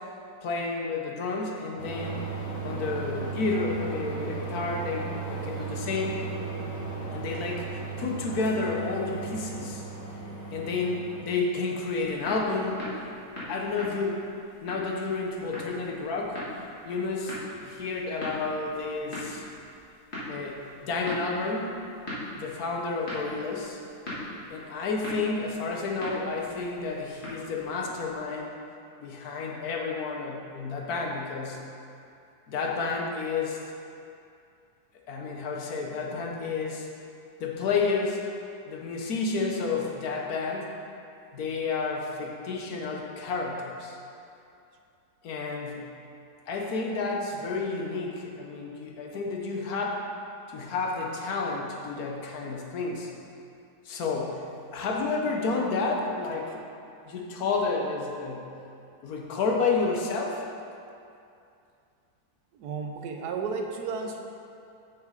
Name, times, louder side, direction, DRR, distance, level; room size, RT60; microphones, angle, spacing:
voice 1, 0.4-2.2 2.6-6.2 7.1-7.7 8.0-9.8 10.5-12.9 13.5-14.3 14.6-16.4 16.8-19.4 20.3-21.7 22.3-23.8 24.5-28.5 29.0-31.6 32.5-33.6 35.1-36.9 37.4-38.3 38.6-40.7 41.3-44.0 45.2-45.8 46.5-50.0 50.5-53.1 53.8-56.6 57.0-58.5 59.0-60.4, left 4 dB, 75° left, 0 dB, 1.4 m, -30 dB
sound 1, 1.8-11.3, right 4 dB, 25° left, 1.4 m, -35 dB
sound 2, 11.7-28.2, left 1 dB, 45° left, 2.1 m, -41 dB
voice 2, 62.5-64.2, right 5 dB, 90° right, 3 dB, 1.3 m, -33 dB
6.9 x 5.4 x 5.0 m, 2.6 s
omnidirectional pair, 1.6 m